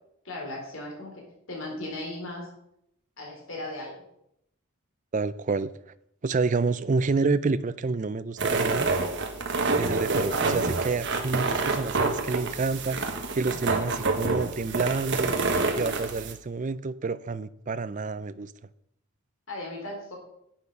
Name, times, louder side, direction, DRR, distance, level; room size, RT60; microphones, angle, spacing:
voice 1, 0.2-2.5 3.2-3.9 13.4-13.6 15.6-15.9 19.5-20.2, left 1 dB, 60° left, 0 dB, 3.7 m, -37 dB
voice 2, 5.1-5.7 6.2-8.9 9.8-15.3 15.8-18.5, right 4 dB, 35° right, 15 dB, 0.4 m, -28 dB
sound 1, 8.4-16.3, right 3 dB, 55° right, 1.4 m, -27 dB
10.5 x 8.4 x 5.4 m, 0.77 s
head